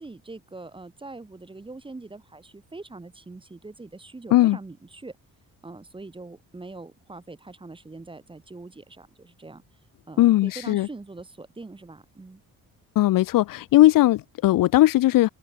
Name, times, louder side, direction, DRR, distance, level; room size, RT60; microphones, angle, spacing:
voice 1, 0.0-5.2 5.6-9.6 10.1-12.4, right 3 dB, 15° right, 1.9 m, -42 dB
voice 2, 10.2-10.9 13.0-15.3, left 15 dB, 70° left, 0.7 m, -18 dB
open air
cardioid pair, 145°, 35 cm